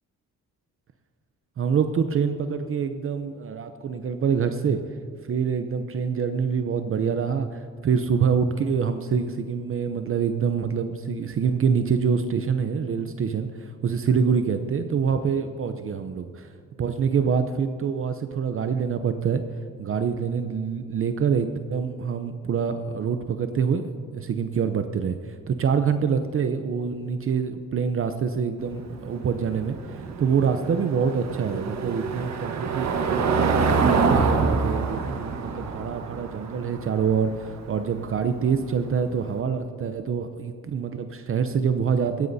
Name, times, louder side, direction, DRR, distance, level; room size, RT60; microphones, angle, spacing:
voice 1, 1.6-4.8 5.3-16.5 16.8-19.4 19.8-42.3, right 6 dB, 45° right, 8 dB, 0.7 m, -26 dB
Car passing by / Engine, 28.6-39.2, right 4 dB, 60° right, 1.4 m, -26 dB
18.0 x 15.5 x 2.8 m, 2.3 s
cardioid pair, 90°, 30 cm